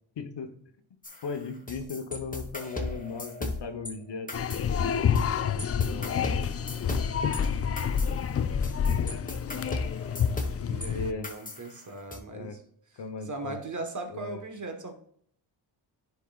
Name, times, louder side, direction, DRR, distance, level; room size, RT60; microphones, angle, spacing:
voice 1, 0.2-0.5 1.2-4.3 5.8-6.3 10.5-11.4 12.3-12.6 13.0-13.6 14.1-14.4, left 4 dB, 55° left, 7 dB, 1.0 m, -37 dB
sound 1, 1.0-3.9 4.3-5.3 5.6-10.9 11.2-12.2, left 2 dB, 15° left, 1.3 m, -37 dB
sound 2, 4.3-11.1, left 7 dB, 35° left, 0.3 m, -28 dB
voice 2, 10.7-12.6 13.2-14.9, right 2 dB, 35° right, 5 dB, 1.2 m, -38 dB
9.9 x 4.6 x 2.4 m, 0.64 s
cardioid pair, 75°, 50 cm